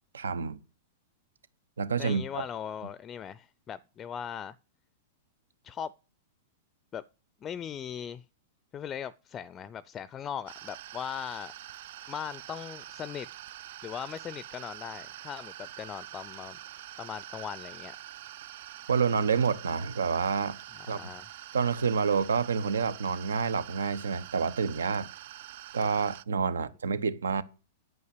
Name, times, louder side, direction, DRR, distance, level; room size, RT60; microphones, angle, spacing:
voice 1, 0.1-0.6 1.8-2.4 18.9-20.6 20.9-21.1 21.5-25.1 25.7-27.4, right 5 dB, 85° right, 0.8 m, -28 dB
voice 2, 2.0-4.6 5.6-5.9 6.9-7.0 7.4-8.2 8.7-11.5 12.1-13.3 13.8-16.6 17.0-18.0 20.9-21.3, left 8 dB, 25° left, 0.4 m, -39 dB
sound 1, 10.5-26.2, right 13 dB, 65° right, 0.5 m, -45 dB
9.2 x 5.6 x 8.2 m
hypercardioid pair, 115°, 0 cm